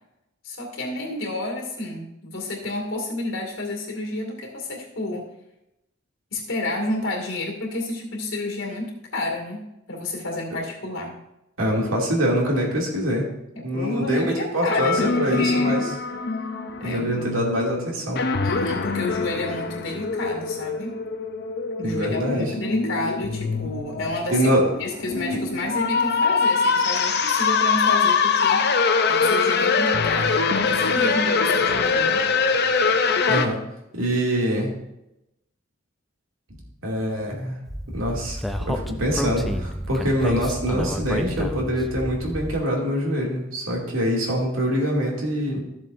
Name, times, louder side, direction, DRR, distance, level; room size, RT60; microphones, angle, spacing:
voice 1, 0.4-5.3 6.3-9.6 9.9-11.2 13.5-15.9 16.8-17.3 18.4-21.0 21.8-24.5 24.8-28.6 29.1-32.2, left 2 dB, 75° left, 0 dB, 2.3 m, -30 dB
voice 2, 11.6-13.3 13.6-15.9 16.8-18.3 21.8-22.5 24.3-24.7 33.3-33.6 33.9-34.7 36.8-37.6 37.9-45.6, equal, 85° right, -2 dB, 2.5 m, -24 dB
sound 1, 14.7-33.5, left 5 dB, 50° left, 0.6 m, -23 dB
Speech, 37.7-42.6, equal, ahead, 0.4 m, -30 dB
13.5 x 7.5 x 2.6 m, 0.89 s
head